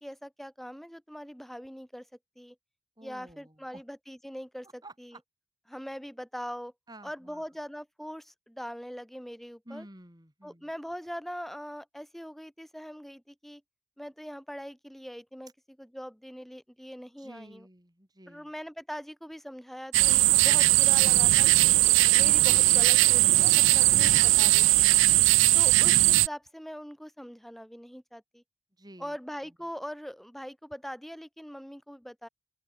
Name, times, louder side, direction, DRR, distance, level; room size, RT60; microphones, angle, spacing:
voice 1, 0.0-2.1 2.4-2.6 3.0-5.2 5.7-6.7 7.0-9.9 10.4-13.6 14.0-15.5 15.8-17.7 18.3-21.7 22.1-24.6 25.5-28.4 29.0-32.3, equal, ahead, 3.4 m, -42 dB
voice 2, 3.0-3.8 4.8-5.2 6.9-7.4 9.7-10.7 17.2-18.5 24.1-25.4 28.8-29.2 29.4-29.5, right 1 dB, 20° right, 3.9 m, -51 dB
sound 1, 19.9-26.3, right 18 dB, 80° right, 0.4 m, -20 dB
open air
head